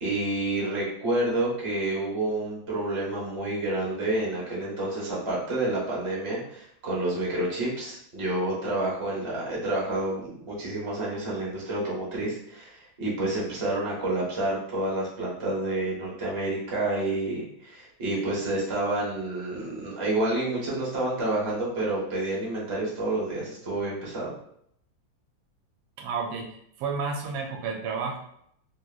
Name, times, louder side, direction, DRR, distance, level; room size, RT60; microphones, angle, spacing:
voice 1, 0.0-24.3, right 2 dB, 25° right, -6 dB, 0.6 m, -29 dB
voice 2, 26.0-28.2, right 5 dB, 85° right, 1 dB, 1.4 m, -31 dB
3.2 x 2.8 x 2.3 m, 0.70 s
omnidirectional pair, 2.2 m